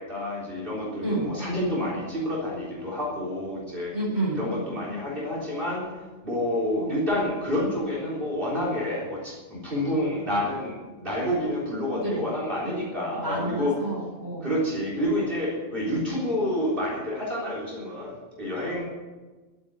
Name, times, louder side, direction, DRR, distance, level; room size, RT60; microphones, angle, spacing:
voice 1, 0.0-3.9 4.4-5.9 6.2-13.8 14.4-18.8, left 1 dB, 45° right, -5 dB, 4.0 m, -28 dB
voice 2, 1.0-1.3 3.9-4.4 6.8-7.0 9.9-10.1 12.0-12.3 12.6-12.7 13.2-14.5 18.7-18.8, right 2 dB, 15° right, -3 dB, 4.7 m, -30 dB
12.0 x 8.8 x 9.6 m, 1.3 s
omnidirectional pair, 1.3 m